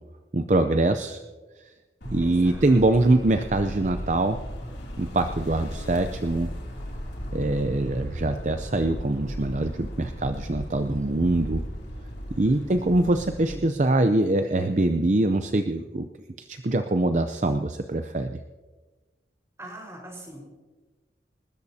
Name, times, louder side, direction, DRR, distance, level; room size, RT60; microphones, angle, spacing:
voice 1, 0.3-1.2 2.0-4.4 5.0-6.5 7.3-11.6 12.3-16.1 16.5-18.4, right 2 dB, 40° right, 7 dB, 0.6 m, -23 dB
sound 1, 2.0-13.5, equal, 85° left, 2.9 m, -36 dB
voice 2, 2.2-3.1 12.4-13.7 19.6-20.6, right 1 dB, 15° right, -1 dB, 4.7 m, -43 dB
28.0 x 13.5 x 2.8 m, 1.3 s
head